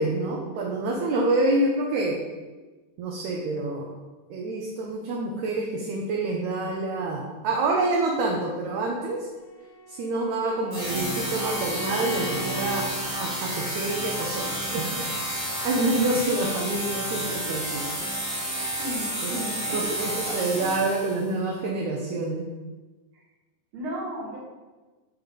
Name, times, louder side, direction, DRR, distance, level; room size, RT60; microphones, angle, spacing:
voice 1, 0.0-2.2 3.0-3.9 4.3-9.3 9.9-17.8 19.2-19.3 19.7-22.5, right 2 dB, 75° right, 0 dB, 1.8 m, -27 dB
Bowed string instrument, 9.4-13.0, equal, 90° left, 2.3 m, -38 dB
sound 1, 10.7-21.3, right 1 dB, 30° right, 0.7 m, -30 dB
voice 2, 18.8-20.7 23.7-24.4, right 1 dB, 50° right, -4 dB, 1.8 m, -34 dB
5.9 x 5.3 x 3.7 m, 1.3 s
omnidirectional pair, 3.8 m